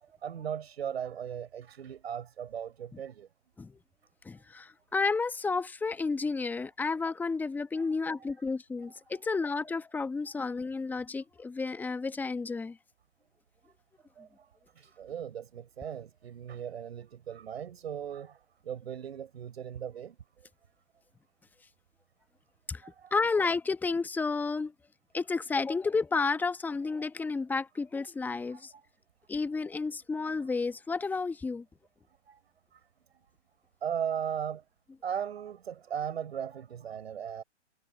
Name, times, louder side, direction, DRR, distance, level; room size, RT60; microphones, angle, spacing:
voice 1, 0.0-3.3 7.8-7.9 9.1-9.4 14.2-14.5 14.8-20.2 22.8-23.1 28.5-28.8 32.3-32.4 32.7-32.8 33.8-34.6 35.0-37.4, right 8 dB, 60° right, 7.4 m, -38 dB
voice 2, 4.2-12.8 22.7-22.8 23.1-24.7 25.1-28.7 29.3-31.6, left 4 dB, 5° left, 1.1 m, -31 dB
figure-of-eight pair, 130°, 36 cm